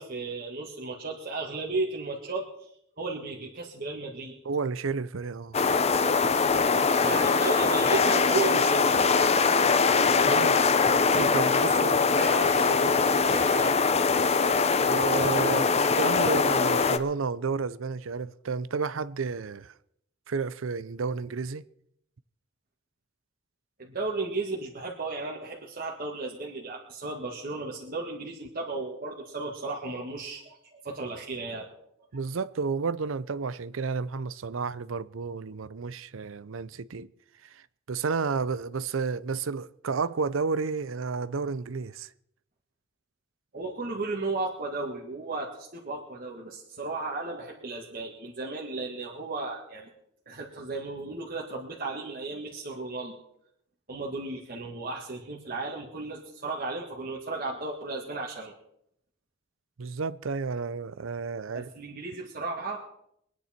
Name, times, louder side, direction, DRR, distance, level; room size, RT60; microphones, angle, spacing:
voice 1, 0.0-2.5 3.0-4.3 7.0-8.9 11.6-13.7 23.8-31.6 43.5-49.9 50.3-53.1 53.9-58.5 61.5-62.8, right 3 dB, 45° right, 1.9 m, -34 dB
voice 2, 4.5-5.6 10.3-10.6 11.1-12.0 14.8-19.7 20.3-21.6 32.1-37.1 37.9-42.1 59.8-61.7, right 5 dB, 85° right, 0.6 m, -31 dB
sound 1, 5.5-17.0, left 4 dB, 35° left, 0.7 m, -22 dB
23.5 x 9.7 x 4.4 m
head